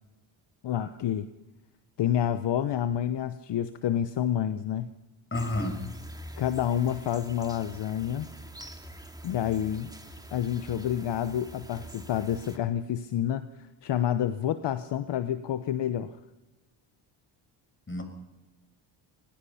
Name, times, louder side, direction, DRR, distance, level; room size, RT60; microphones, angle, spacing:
voice 1, 0.6-1.3 2.0-4.9 6.4-8.3 9.2-9.9 10.3-16.2, left 10 dB, 60° left, 11 dB, 1.1 m, -29 dB
voice 2, 5.3-5.8 17.9-18.0, left 1 dB, 25° left, 5 dB, 6.9 m, -30 dB
sound 1, 5.3-12.6, right 1 dB, 10° right, 2.6 m, -45 dB
25.5 x 21.0 x 5.8 m, 1.1 s
cardioid pair, 90°, 49 cm